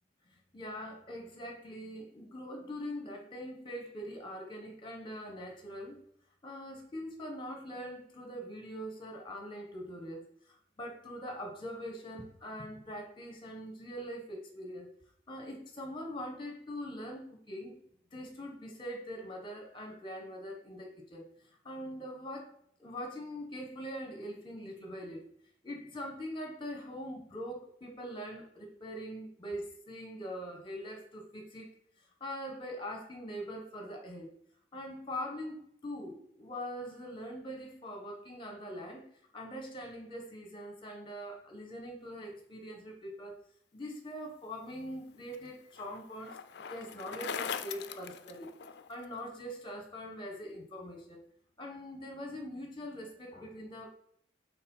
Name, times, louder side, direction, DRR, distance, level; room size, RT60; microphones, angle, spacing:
voice 1, 0.5-6.0 6.4-14.9 15.3-17.8 18.1-22.5 22.8-25.2 25.6-31.7 32.2-34.3 34.7-39.0 39.3-43.3 43.7-48.5 48.9-51.2 51.6-53.9, equal, 25° left, 3 dB, 1.4 m, -42 dB
Bicycle, 44.6-49.1, left 7 dB, 60° left, 0.4 m, -41 dB
5.6 x 4.1 x 5.5 m, 0.67 s
head